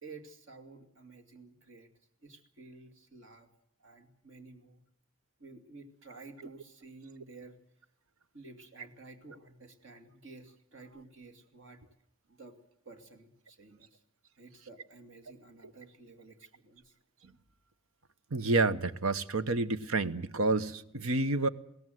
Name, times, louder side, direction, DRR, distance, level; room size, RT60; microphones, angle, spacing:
voice 1, 0.0-1.9 2.2-3.5 3.8-4.8 5.4-7.6 8.3-11.8 12.3-12.6 12.8-14.0 14.4-17.0, right 3 dB, 60° right, 4 dB, 2.6 m, -52 dB
voice 2, 18.3-21.5, right 3 dB, 80° right, 13 dB, 1.0 m, -29 dB
21.5 x 17.5 x 7.8 m, 0.73 s
head